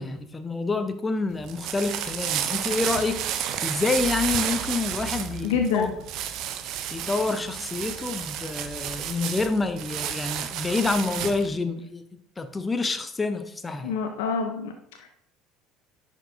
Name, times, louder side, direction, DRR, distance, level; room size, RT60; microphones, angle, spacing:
voice 1, 0.0-5.9 6.9-12.0 12.4-13.9, left 3 dB, 20° left, 9 dB, 0.6 m, -28 dB
sound 1, 1.3-11.5, right 10 dB, 55° right, 0.5 m, -31 dB
voice 2, 5.4-5.9 13.8-15.1, left 6 dB, 70° left, 4 dB, 0.5 m, -27 dB
9.9 x 4.5 x 2.6 m, 0.74 s
figure-of-eight pair, 65°, 0 cm